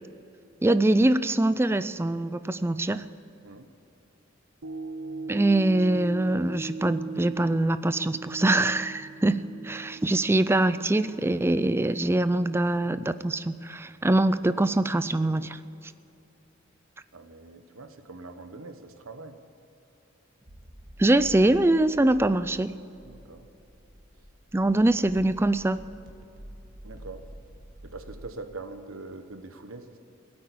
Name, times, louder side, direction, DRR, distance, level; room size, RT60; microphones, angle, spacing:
voice 1, 0.6-3.0 5.3-15.6 21.0-22.7 24.5-25.8, right 1 dB, 10° right, 13 dB, 0.4 m, -23 dB
sound 1, 4.6-13.0 13.5-13.6, right 4 dB, 60° right, 0.7 m, -40 dB
voice 2, 17.1-19.4 23.0-23.5 26.8-27.3 27.8-30.0, right 3 dB, 80° right, 7 dB, 1.2 m, -43 dB
sound 2, 20.5-28.3, equal, 40° right, 2.2 m, -48 dB
17.0 x 8.8 x 8.5 m, 2.9 s
head